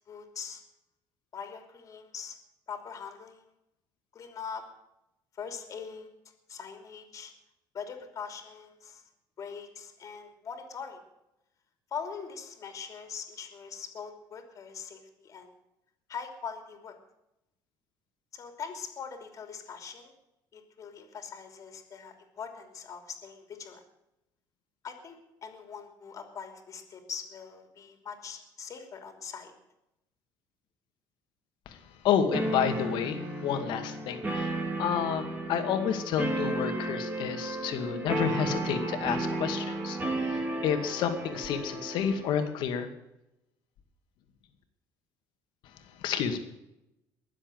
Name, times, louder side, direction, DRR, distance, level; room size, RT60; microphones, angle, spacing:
voice 1, 0.1-0.6 1.3-2.3 2.7-3.4 4.1-4.6 5.3-6.1 6.5-7.3 7.7-9.0 9.4-11.0 11.9-15.5 16.1-17.0 18.3-20.1 20.5-23.8 24.8-29.5, left 6 dB, 40° left, 5 dB, 3.0 m, -42 dB
voice 2, 32.0-42.9 46.0-46.4, left 8 dB, 70° left, 7 dB, 2.2 m, -30 dB
sound 1, 32.3-42.4, right 2 dB, 20° right, 3.4 m, -33 dB
21.5 x 7.6 x 7.9 m, 0.88 s
cardioid pair, 125°, 8 cm